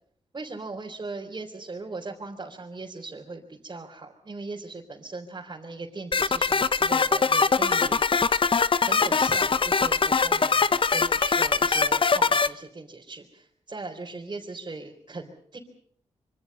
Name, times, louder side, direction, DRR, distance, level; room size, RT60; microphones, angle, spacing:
voice 1, 0.3-8.0 8.8-15.6, right 3 dB, 35° right, -3 dB, 4.1 m, -39 dB
sound 1, 6.1-12.5, left 5 dB, 45° left, 0.9 m, -22 dB
26.0 x 25.0 x 5.6 m, 0.64 s
cardioid pair, 75°, 12 cm